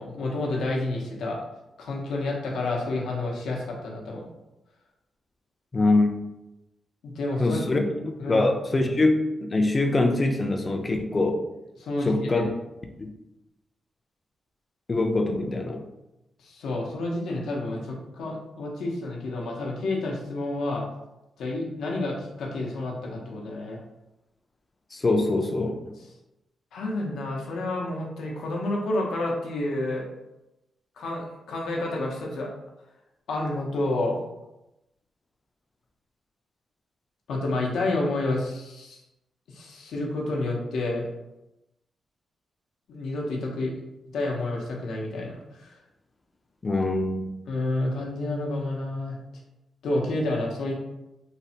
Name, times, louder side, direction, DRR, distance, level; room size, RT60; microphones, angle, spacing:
voice 1, 0.0-1.4 1.8-4.2 7.0-7.8 8.2-8.5 11.8-12.5 16.4-20.8 21.4-23.8 26.7-30.1 31.0-32.5 33.3-34.2 37.3-39.0 39.5-41.0 42.9-43.7 44.1-45.7 47.5-49.2 49.8-50.7, left 2 dB, 85° left, -1 dB, 0.6 m, -29 dB
voice 2, 5.7-6.2 7.4-11.4 12.1-12.5 13.0-13.1 14.9-15.8 24.9-25.8 46.6-47.3, left 2 dB, 35° left, 3 dB, 0.4 m, -24 dB
3.1 x 2.0 x 2.7 m, 0.94 s
cardioid pair, 70°, 0 cm